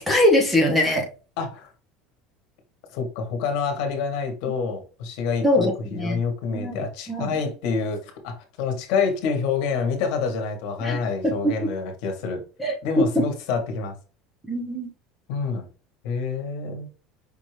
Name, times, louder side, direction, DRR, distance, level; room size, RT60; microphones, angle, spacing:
voice 1, 0.1-1.1 5.4-6.2 6.5-7.3 10.8-11.7 12.6-13.2 14.4-14.9, left 1 dB, ahead, 0.9 m, -22 dB
voice 2, 1.4-1.7 2.9-12.4 12.8-13.9 15.3-15.7 16.0-16.9, left 5 dB, 60° left, 1.3 m, -27 dB
5.3 x 2.6 x 3.2 m
cardioid pair, 175°, 0 cm